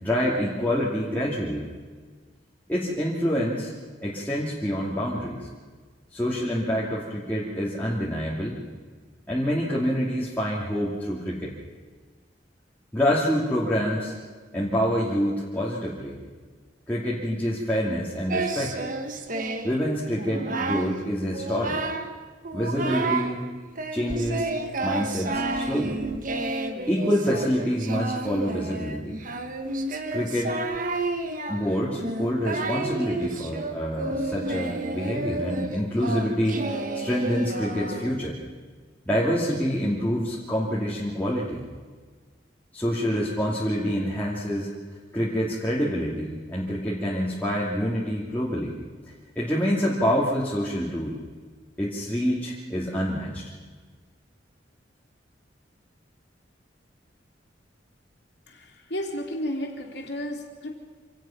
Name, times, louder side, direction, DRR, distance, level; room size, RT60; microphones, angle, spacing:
voice 1, 0.0-1.6 2.7-3.7 4.0-5.5 6.1-8.6 9.3-11.5 12.9-14.2 14.5-16.1 16.9-18.7 19.6-21.8 22.5-23.4 23.9-24.5 24.8-26.0 26.9-29.2 30.1-30.6 31.5-38.4 39.1-41.6 42.7-44.7 45.1-48.7 49.4-51.2 51.8-53.4, equal, 10° left, -7 dB, 2.6 m, -26 dB
Singing, 18.3-19.8 20.2-20.9 21.3-22.1 22.4-23.3 23.8-38.3, right 2 dB, 45° right, 1.4 m, -30 dB
voice 2, 58.5-60.7, equal, 65° left, 2 dB, 3.2 m, -33 dB
26.5 x 17.5 x 5.9 m, 1.5 s
head